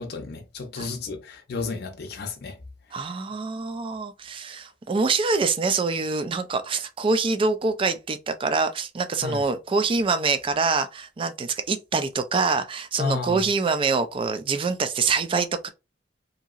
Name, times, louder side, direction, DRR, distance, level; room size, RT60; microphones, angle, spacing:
voice 1, 0.0-2.6 9.2-9.4 13.0-13.4, left 4 dB, 60° left, 0.5 m, -32 dB
voice 2, 2.9-15.7, right 4 dB, 30° right, 0.3 m, -25 dB
2.8 x 2.8 x 2.4 m
head